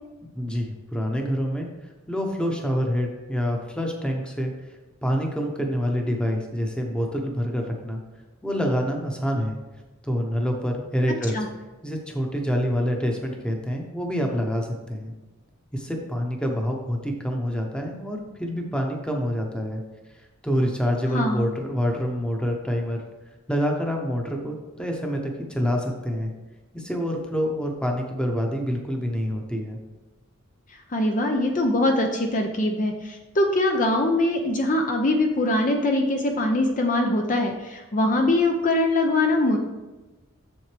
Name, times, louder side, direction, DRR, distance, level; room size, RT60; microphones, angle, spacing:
voice 1, 0.3-1.7 2.1-4.5 5.0-8.0 8.4-9.6 10.0-11.4 11.8-15.1 15.7-19.8 20.4-23.0 23.5-26.3 26.7-29.8, equal, 5° left, 1 dB, 1.0 m, -26 dB
voice 2, 21.1-21.5 30.9-39.6, left 1 dB, 40° left, 3 dB, 0.7 m, -22 dB
7.6 x 7.0 x 3.4 m, 1.2 s
head